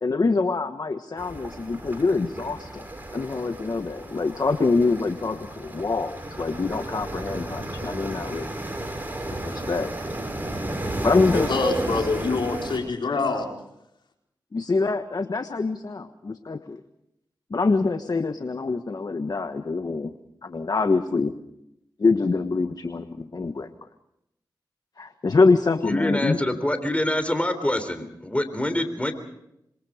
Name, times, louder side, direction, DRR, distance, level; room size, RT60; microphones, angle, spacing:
voice 1, 0.0-2.9 3.1-8.5 9.4-9.9 11.0-11.5 14.5-16.8 17.5-20.1 20.4-21.3 22.0-23.7 25.0-26.4, left 3 dB, 55° left, 9 dB, 1.3 m, -25 dB
sound 1, 1.2-12.8, right 1 dB, 25° right, 7.5 m, -33 dB
voice 2, 11.3-13.5, left 3 dB, 80° left, 1 dB, 4.4 m, -25 dB
voice 3, 25.9-29.1, left 1 dB, 15° left, 9 dB, 3.6 m, -25 dB
27.0 x 22.5 x 5.1 m, 0.81 s
cardioid pair, 50°, 8 cm